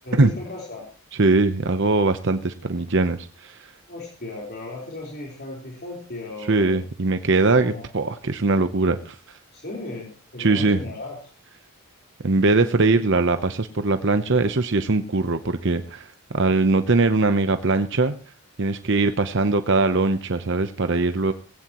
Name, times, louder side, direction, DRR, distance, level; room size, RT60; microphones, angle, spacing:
voice 1, 0.0-0.9 3.9-6.8 7.6-7.8 9.5-11.3, left 2 dB, 50° left, -2 dB, 4.3 m, -36 dB
voice 2, 1.2-3.7 6.5-9.4 10.4-10.8 12.2-18.1 18.6-21.3, right 3 dB, 60° right, 9 dB, 0.9 m, -21 dB
19.5 x 17.0 x 3.1 m, 0.36 s
head